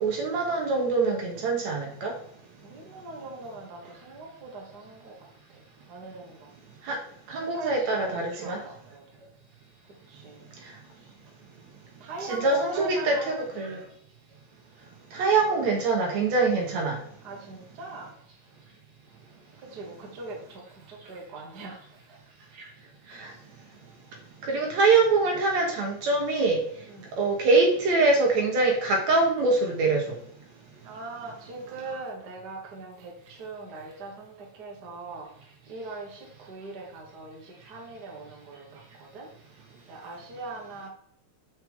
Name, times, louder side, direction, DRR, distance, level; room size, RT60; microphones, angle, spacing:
voice 1, 0.0-2.1 6.8-7.0 7.3-8.6 12.3-13.8 15.1-17.0 23.1-23.3 24.4-26.6 27.1-30.0, right 3 dB, 70° right, 0 dB, 1.8 m, -24 dB
voice 2, 2.6-5.1 5.9-6.5 7.3-9.0 10.1-10.4 12.0-13.5 17.2-18.1 19.7-21.8 22.1-22.2 26.8-27.1 30.8-35.3 35.7-39.3 39.9-40.9, right 3 dB, 85° right, -1 dB, 0.8 m, -41 dB
6.5 x 6.2 x 3.6 m, 0.66 s
omnidirectional pair, 4.5 m